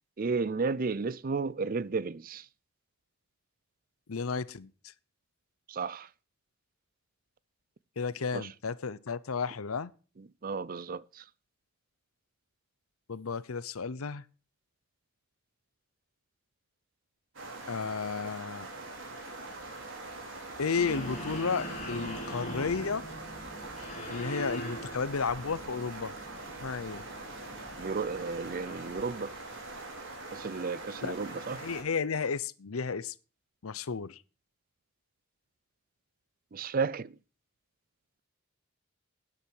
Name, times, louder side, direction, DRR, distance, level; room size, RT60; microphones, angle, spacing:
voice 1, 0.2-2.5 5.7-6.1 8.3-8.5 10.4-11.2 27.8-29.4 30.3-31.6 36.5-37.2, right 4 dB, 40° right, 0.5 m, -33 dB
voice 2, 4.1-4.9 8.0-9.9 13.1-14.2 17.7-18.7 20.6-23.0 24.1-26.1 26.6-27.0 31.0-31.1 31.5-33.1 33.6-34.2, left 5 dB, 85° left, 0.7 m, -33 dB
sound 1, 17.3-31.8, right 2 dB, 65° right, 4.5 m, -43 dB
sound 2, 20.7-29.0, equal, 35° left, 3.7 m, -42 dB
13.0 x 10.0 x 4.6 m
head